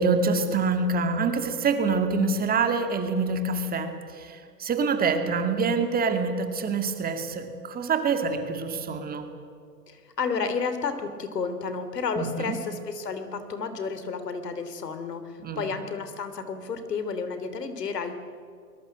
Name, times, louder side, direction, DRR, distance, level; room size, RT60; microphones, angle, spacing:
voice 1, 0.0-9.3 12.2-12.6 15.4-15.6, right 4 dB, 20° right, 7 dB, 2.2 m, -26 dB
voice 2, 9.9-18.1, left 5 dB, 80° left, 9 dB, 3.0 m, -31 dB
23.5 x 21.5 x 7.7 m, 2.3 s
hypercardioid pair, 120°, 47 cm